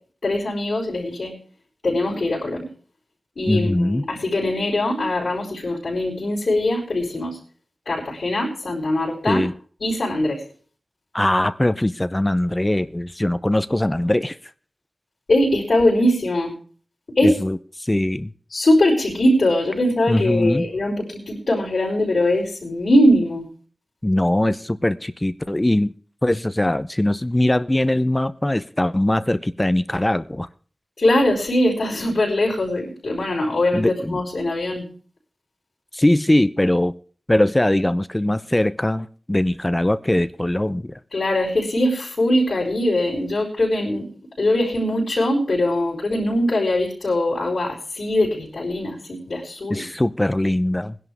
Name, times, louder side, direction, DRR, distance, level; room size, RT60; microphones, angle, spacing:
voice 1, 0.2-1.3 1.8-2.7 3.4-7.4 7.8-9.4 9.8-10.4 15.3-16.5 17.2-17.4 18.5-23.5 31.0-34.8 41.1-44.1 44.4-49.8, left 1 dB, 80° left, -7 dB, 4.7 m, -21 dB
voice 2, 3.5-4.0 9.3-9.5 11.1-14.4 17.2-18.3 20.1-20.7 24.0-25.9 26.2-30.5 33.7-34.2 35.9-36.9 37.3-41.0 49.7-51.0, left 1 dB, 20° left, 13 dB, 0.6 m, -21 dB
20.5 x 11.0 x 3.5 m, 0.43 s
wide cardioid pair, 55°, 0 cm